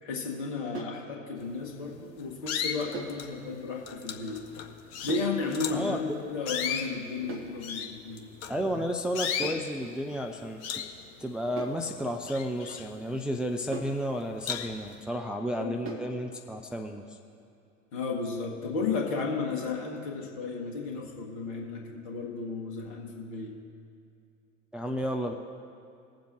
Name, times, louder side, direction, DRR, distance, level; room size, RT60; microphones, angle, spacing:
voice 1, 0.0-4.4 5.0-8.3 15.6-15.9 17.9-23.5, left 4 dB, 60° left, 0 dB, 2.2 m, -34 dB
sound 1, 0.7-1.1 2.9-3.2 5.1-5.4 7.3-7.6 9.4-9.7 11.6-11.9 13.7-14.0 15.9-16.2, right 4 dB, 30° right, 1.8 m, -39 dB
sound 2, 1.6-1.9 2.4-3.3 3.9-5.9 6.4-8.8 9.1-9.6 10.1-10.3 10.6-11.8 12.1-13.4 13.8-13.9 14.4-14.9, left 8 dB, 40° left, 1.0 m, -35 dB
voice 2, 8.5-10.6 11.2-17.0 24.7-25.3, equal, ahead, 2 dB, 0.5 m, -32 dB
20.5 x 7.6 x 3.0 m, 2.5 s
figure-of-eight pair, 75°, 38 cm